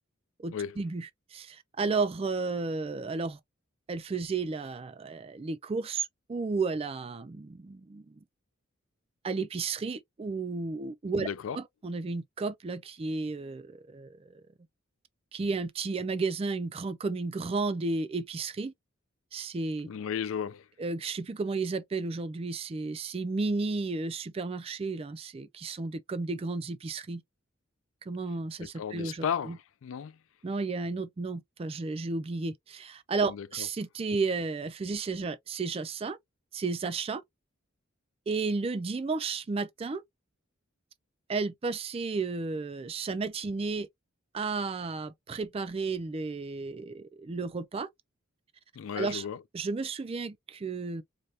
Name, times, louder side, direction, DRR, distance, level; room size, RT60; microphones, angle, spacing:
voice 1, 0.4-3.4 3.9-8.2 9.2-11.3 11.5-14.4 15.3-18.7 19.3-19.9 20.8-27.2 28.1-29.6 30.4-36.2 36.5-37.2 38.3-40.0 41.3-43.9 44.3-47.9 49.0-49.2 49.5-51.0, right 4 dB, 30° right, 0.3 m, -33 dB
voice 2, 11.2-11.6 19.9-20.7 28.6-30.2 33.3-33.7 48.7-49.4, left 7 dB, 75° left, 0.3 m, -34 dB
3.3 x 2.2 x 2.6 m
head